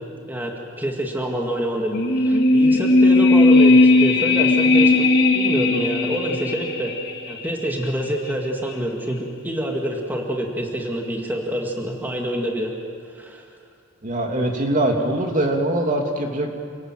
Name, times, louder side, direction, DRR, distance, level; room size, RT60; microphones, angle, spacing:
voice 1, 0.3-5.1 5.3-6.9 7.3-12.7 13.2-13.4, equal, 10° right, 0 dB, 2.1 m, -26 dB
sound 1, 1.9-7.2 7.5-7.6, left 2 dB, 55° left, 2.4 m, -16 dB
voice 2, 14.0-16.6, right 1 dB, 40° right, 2 dB, 2.5 m, -22 dB
28.5 x 18.5 x 7.6 m, 2.2 s
head